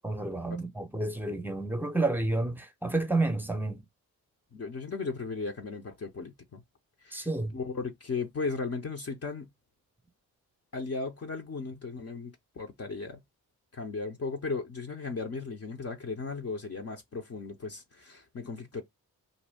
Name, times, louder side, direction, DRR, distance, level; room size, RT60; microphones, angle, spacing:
voice 1, 0.0-3.8 7.1-7.6, right 2 dB, 5° right, 0.7 m, -30 dB
voice 2, 4.5-6.6 7.0-7.3 7.5-9.5 10.7-13.2 13.7-18.8, left 4 dB, 40° left, 0.7 m, -36 dB
2.6 x 2.1 x 3.3 m
supercardioid pair, 45°, 38 cm